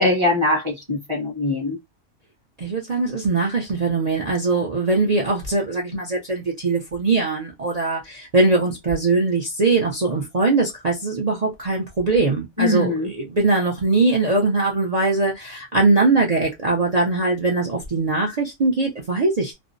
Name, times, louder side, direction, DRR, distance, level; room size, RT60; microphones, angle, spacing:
voice 1, 0.0-1.8 12.6-13.1, left 2 dB, 25° right, 0.7 m, -21 dB
voice 2, 2.6-12.9 13.3-19.5, right 3 dB, 60° right, 0.4 m, -21 dB
2.5 x 2.0 x 2.5 m
omnidirectional pair, 1.5 m